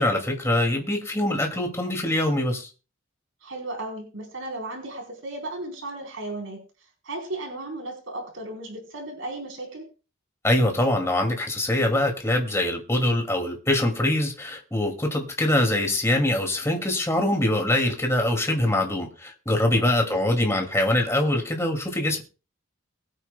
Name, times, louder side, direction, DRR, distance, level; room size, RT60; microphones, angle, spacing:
voice 1, 0.0-2.7 10.4-22.2, left 1 dB, 15° left, 2.4 m, -23 dB
voice 2, 3.4-6.6 7.0-9.9 19.8-20.1, right 2 dB, 70° right, 4.1 m, -35 dB
22.5 x 9.2 x 2.3 m
head